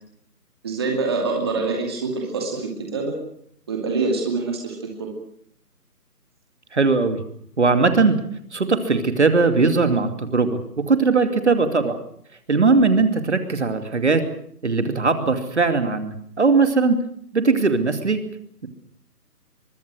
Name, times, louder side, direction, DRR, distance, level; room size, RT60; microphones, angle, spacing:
voice 1, 0.6-3.2 3.7-5.1, right 3 dB, 15° right, 1 dB, 2.5 m, -25 dB
voice 2, 6.7-7.2 7.6-8.2 8.5-12.0 12.5-14.2 14.6-17.0 17.3-18.2, right 4 dB, 45° right, 8 dB, 2.7 m, -19 dB
24.0 x 23.5 x 6.3 m, 0.64 s
figure-of-eight pair, 170°, 47 cm